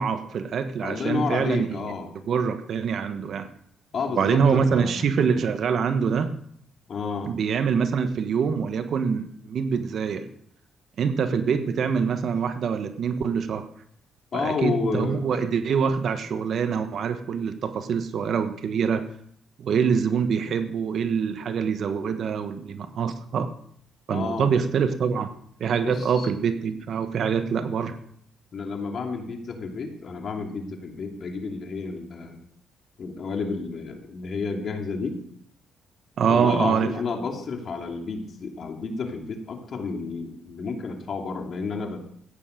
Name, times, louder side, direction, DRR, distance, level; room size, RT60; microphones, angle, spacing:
voice 1, 0.0-1.9 2.3-3.5 4.1-6.3 7.3-10.3 11.0-13.6 14.3-19.0 19.6-23.5 24.1-25.3 25.6-27.9 36.2-36.9, right 6 dB, 60° right, 9 dB, 1.3 m, -25 dB
voice 2, 0.8-2.1 3.9-5.0 6.9-7.3 14.3-15.2 24.1-24.5 25.8-26.3 28.5-32.4 33.0-35.2 36.3-42.0, left 4 dB, 55° left, 3 dB, 2.7 m, -31 dB
15.0 x 9.7 x 5.2 m, 0.65 s
cardioid pair, 90°, 0 cm